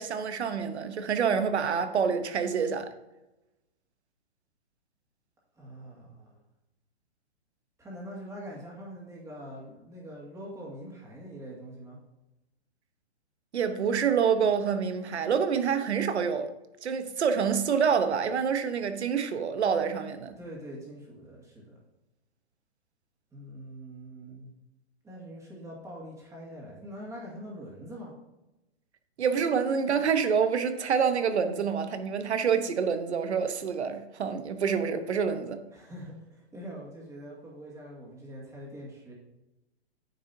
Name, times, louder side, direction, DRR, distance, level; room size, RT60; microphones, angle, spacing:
voice 1, 0.0-2.9 13.5-16.5 16.8-20.4 29.2-35.6, right 6 dB, 85° right, 1.0 m, -27 dB
voice 2, 5.6-6.4 7.8-12.0 20.4-21.8 23.3-24.5 25.0-28.2 35.7-39.1, equal, 10° right, 2.1 m, -44 dB
9.3 x 6.3 x 2.8 m
hypercardioid pair, 140°, 33 cm